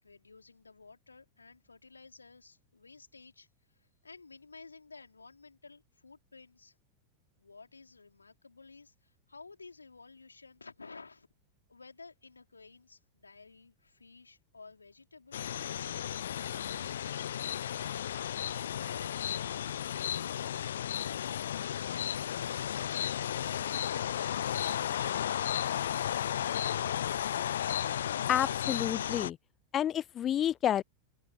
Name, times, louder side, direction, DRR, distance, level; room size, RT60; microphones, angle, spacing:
voice 1, 0.0-6.8 7.4-11.3 11.7-18.1, left 4 dB, 80° left, 4.2 m, -54 dB
sound 1, 15.3-29.3, left 10 dB, 65° left, 0.5 m, -34 dB
voice 2, 28.3-29.4 29.7-30.8, left 10 dB, 30° left, 0.8 m, -29 dB
open air
figure-of-eight pair, 90°, 0 cm